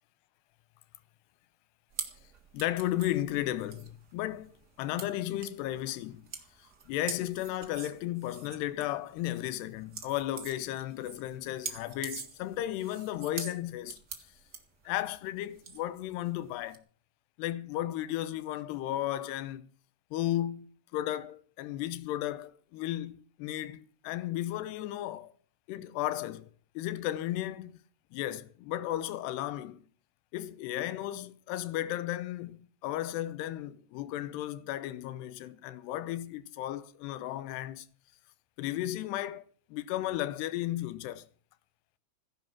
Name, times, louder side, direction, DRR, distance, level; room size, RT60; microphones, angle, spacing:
sound 1, 1.9-16.8, right 6 dB, 70° right, 0.9 m, -45 dB
voice 1, 2.5-4.5 4.8-6.2 6.9-14.0 14.9-16.8 17.4-19.7 20.1-25.3 25.7-26.5 26.8-27.7 28.1-29.8 30.3-37.9 38.6-39.4 39.7-41.3, left 14 dB, 75° left, 2.9 m, -34 dB
16.5 x 11.0 x 7.3 m
omnidirectional pair, 5.1 m